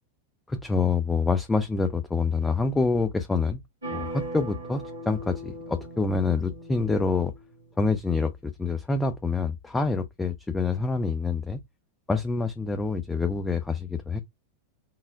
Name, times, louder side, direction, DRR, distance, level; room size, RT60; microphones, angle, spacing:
voice 1, 0.5-3.6 3.9-7.3 7.8-11.6 12.1-14.2, left 4 dB, 10° left, 0.6 m, -26 dB
sound 1, 3.8-7.6, right 1 dB, 75° right, 1.8 m, -39 dB
5.8 x 2.1 x 3.8 m
figure-of-eight pair, 90°, 0 cm